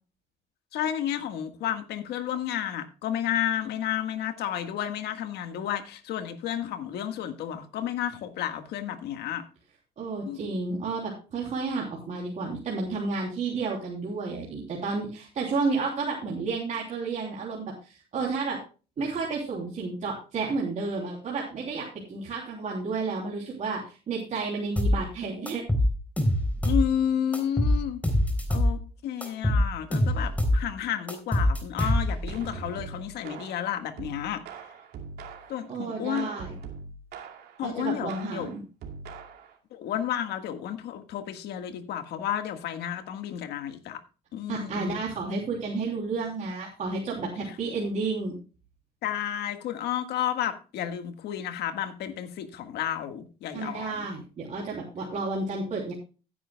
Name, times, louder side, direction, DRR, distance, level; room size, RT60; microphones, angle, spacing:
voice 1, 0.7-9.5 10.2-10.4 26.6-28.0 28.5-34.4 35.5-36.3 37.6-38.5 39.7-44.0 44.3-44.9 49.0-53.9, left 10 dB, 75° left, 1.6 m, -31 dB
voice 2, 10.0-18.6 19.0-25.6 35.7-36.6 37.6-38.6 44.5-48.3 53.5-55.9, right 4 dB, 45° right, 3.3 m, -31 dB
sound 1, 24.8-25.0 25.5-26.9 27.3-28.8 29.2-30.6 31.1-32.3, left 1 dB, 10° left, 3.4 m, -24 dB
sound 2, 31.8-35.7 36.2-37.6 38.1-39.6, right 5 dB, 70° right, 2.5 m, -42 dB
16.5 x 9.8 x 2.3 m
cardioid pair, 110°, 17 cm